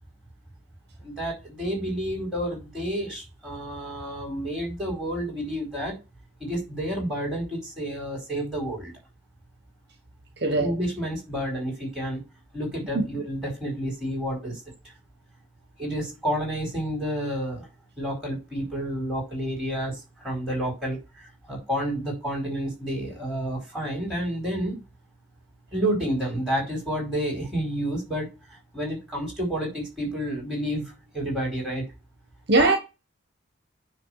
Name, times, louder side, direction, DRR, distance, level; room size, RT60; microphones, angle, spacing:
voice 1, 1.0-5.9 6.4-8.9 10.5-12.2 12.5-14.6 15.8-17.7 18.0-24.8 25.7-28.3 28.7-31.8, equal, 5° right, 4.8 m, -30 dB
voice 2, 10.4-10.7 12.9-13.0 32.5-32.8, right 2 dB, 55° right, 1.1 m, -20 dB
9.6 x 3.3 x 6.4 m
head